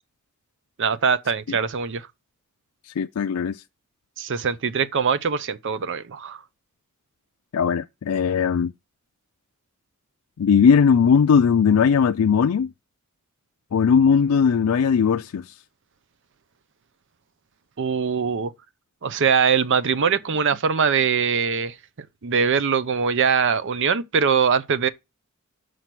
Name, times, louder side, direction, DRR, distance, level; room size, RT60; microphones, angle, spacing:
voice 1, 0.8-2.1 4.2-6.4 17.8-18.5 19.0-21.7 22.2-24.9, right 6 dB, 60° right, 0.6 m, -22 dB
voice 2, 2.9-3.6 7.5-8.7 10.4-12.7 13.7-15.5, left 6 dB, 85° left, 0.4 m, -19 dB
6.4 x 4.6 x 5.9 m
head